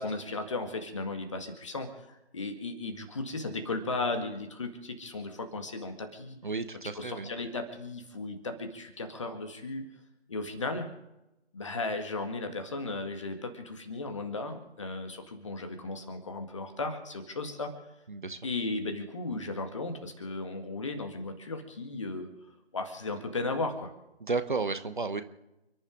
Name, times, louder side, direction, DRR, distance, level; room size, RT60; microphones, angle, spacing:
voice 1, 0.0-6.4 7.0-9.8 10.3-10.9 11.5-17.7 18.4-22.3 22.7-23.9, left 3 dB, 30° left, 6 dB, 1.9 m, -35 dB
voice 2, 6.4-7.3 18.1-18.4 24.2-25.2, right 3 dB, 45° right, 11 dB, 1.1 m, -32 dB
30.0 x 11.0 x 3.8 m, 0.93 s
figure-of-eight pair, 155°, 33 cm